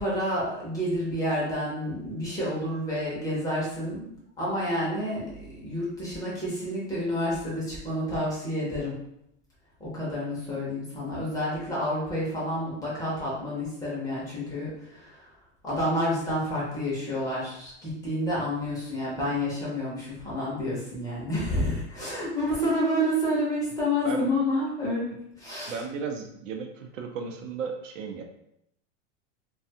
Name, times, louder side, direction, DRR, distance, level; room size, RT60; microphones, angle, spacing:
voice 1, 0.0-4.1 4.4-5.3 5.6-9.0 9.8-15.2 15.6-25.1 25.4-25.8, equal, 10° left, -7 dB, 0.6 m, -29 dB
voice 2, 25.7-28.2, right 5 dB, 80° right, 4 dB, 0.6 m, -34 dB
2.4 x 2.3 x 2.7 m, 0.78 s
supercardioid pair, 150°, 37 cm